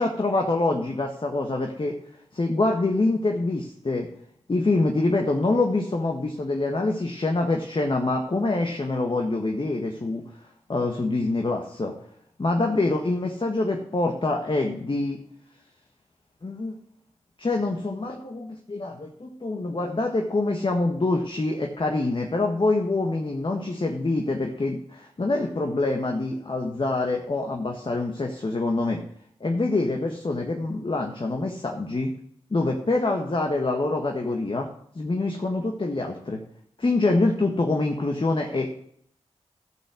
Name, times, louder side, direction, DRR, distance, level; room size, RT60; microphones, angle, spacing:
voice 1, 0.0-1.9 2.3-4.1 4.5-10.2 10.7-11.9 12.4-15.2 16.4-16.7 17.4-29.0 29.4-32.1 32.5-34.7 34.9-36.4 36.8-38.7, left 2 dB, 45° left, 2 dB, 1.5 m, -25 dB
13.0 x 5.8 x 7.0 m, 0.67 s
cardioid pair, 40°, 12 cm